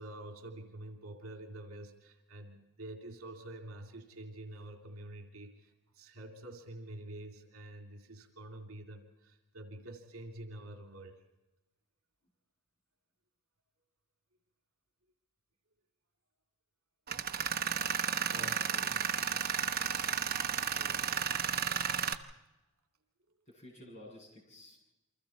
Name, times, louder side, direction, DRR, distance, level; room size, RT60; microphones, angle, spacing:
voice 1, 0.0-11.2 18.4-18.6 19.3-19.4, right 1 dB, 70° right, 3 dB, 2.8 m, -47 dB
Tools, 17.1-22.1, right 8 dB, 40° right, 0.8 m, -33 dB
voice 2, 18.2-18.9 20.6-21.1 23.5-24.8, left 1 dB, 30° left, -3 dB, 7.8 m, -53 dB
28.5 x 24.5 x 4.3 m, 0.98 s
head